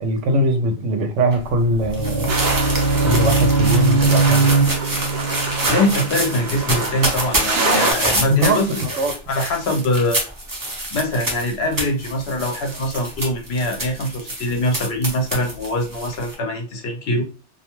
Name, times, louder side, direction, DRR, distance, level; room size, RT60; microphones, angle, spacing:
voice 1, 0.0-2.3 3.0-4.5 8.3-9.1, equal, 90° right, 6 dB, 0.9 m, -21 dB
sound 1, 1.3-16.3, right 1 dB, 25° right, 0.5 m, -27 dB
sound 2, 1.5-7.4, right 4 dB, 25° left, 0.5 m, -21 dB
sound 3, 2.3-7.9, right 3 dB, 60° right, 0.9 m, -26 dB
voice 2, 5.7-8.7 9.3-10.2 10.9-17.2, left 1 dB, 65° left, 3 dB, 0.9 m, -23 dB
2.4 x 2.1 x 3.0 m, 0.33 s
omnidirectional pair, 1.2 m